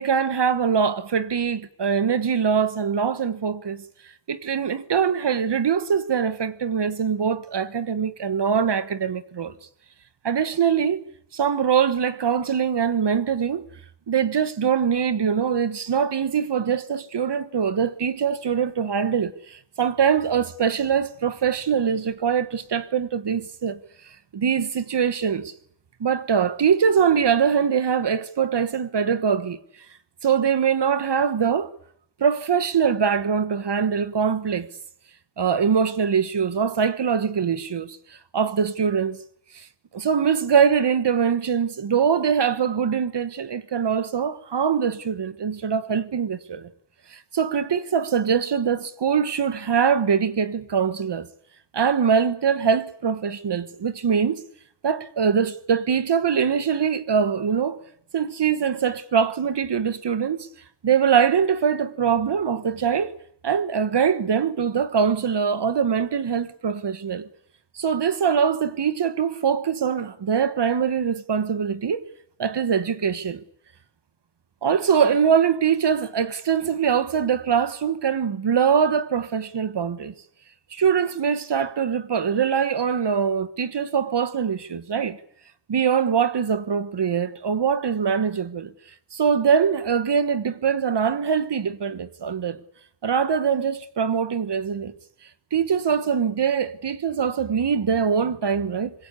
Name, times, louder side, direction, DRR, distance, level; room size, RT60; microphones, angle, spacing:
voice 1, 0.0-3.8 4.3-9.5 10.2-11.0 11.3-13.6 14.1-23.8 24.3-25.5 26.0-29.6 30.2-31.7 32.2-34.7 35.4-38.0 38.3-39.2 39.5-39.7 39.9-46.7 47.1-51.3 51.7-54.4 54.8-57.8 58.1-60.5 60.8-63.1 63.4-67.3 67.7-72.0 72.4-73.4 74.6-80.1 80.7-85.2 85.7-88.7 89.1-92.6 93.0-94.9 95.5-98.9, right 7 dB, 70° right, 1.3 m, -23 dB
25.5 x 21.5 x 8.3 m
wide cardioid pair, 125°, 43 cm